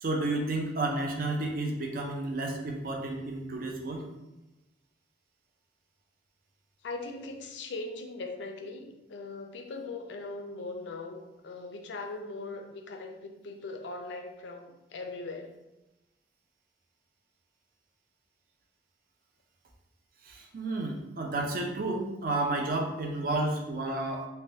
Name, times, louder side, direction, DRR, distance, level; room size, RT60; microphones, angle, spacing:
voice 1, 0.0-4.0 20.2-24.3, right 2 dB, 50° right, 1 dB, 0.5 m, -31 dB
voice 2, 6.8-15.6, left 3 dB, 90° left, 4 dB, 0.4 m, -40 dB
3.3 x 2.2 x 2.7 m, 0.97 s
head